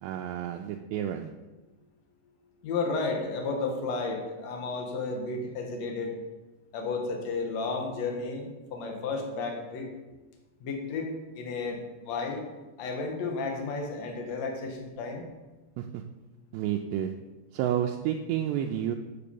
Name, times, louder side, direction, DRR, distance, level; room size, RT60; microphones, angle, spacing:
voice 1, 0.0-1.3 15.8-16.0 16.5-17.1 17.5-19.0, right 10 dB, 80° right, 3 dB, 2.6 m, -30 dB
voice 2, 2.6-6.2 6.7-9.9 10.6-12.5 12.8-15.2, left 3 dB, 60° left, 2 dB, 1.8 m, -32 dB
9.6 x 6.0 x 6.9 m, 1.1 s
omnidirectional pair, 5.3 m